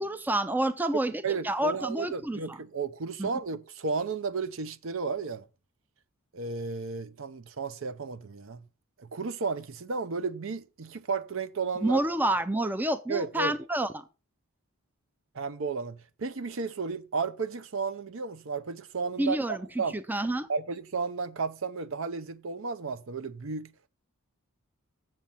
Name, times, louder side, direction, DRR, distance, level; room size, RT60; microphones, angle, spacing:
voice 1, 0.0-1.1 1.4-2.6 3.2-3.3 11.8-14.0 19.2-19.6 19.9-20.5, right 1 dB, 10° right, 0.4 m, -28 dB
voice 2, 1.2-5.5 6.3-8.6 9.0-12.0 13.1-13.5 15.3-19.9 20.5-23.7, right 4 dB, 65° right, 0.6 m, -33 dB
7.4 x 7.4 x 5.5 m
head